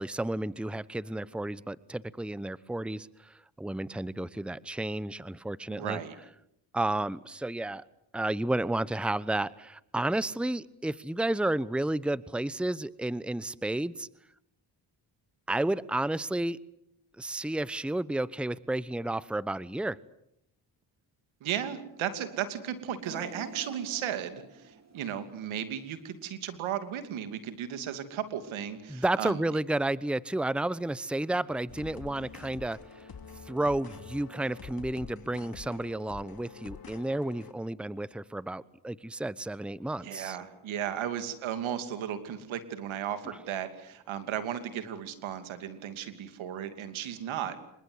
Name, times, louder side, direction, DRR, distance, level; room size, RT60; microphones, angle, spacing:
voice 1, 0.0-6.0 6.7-7.8 8.1-14.1 15.5-16.6 17.2-20.0 28.9-33.1 33.5-40.4 43.3-43.4, right 1 dB, ahead, 18 dB, 1.0 m, -31 dB
voice 2, 5.7-6.2 21.4-24.4 24.9-29.4 40.0-47.6, right 9 dB, 85° right, 10 dB, 2.9 m, -35 dB
sound 1, 23.0-26.2 26.6-26.8 27.8-27.9, right 3 dB, 35° right, 5.7 m, -48 dB
sound 2, 31.7-37.5, left 6 dB, 50° left, 2.8 m, -47 dB
28.0 x 24.5 x 8.1 m, 0.77 s
supercardioid pair, 60°, 46 cm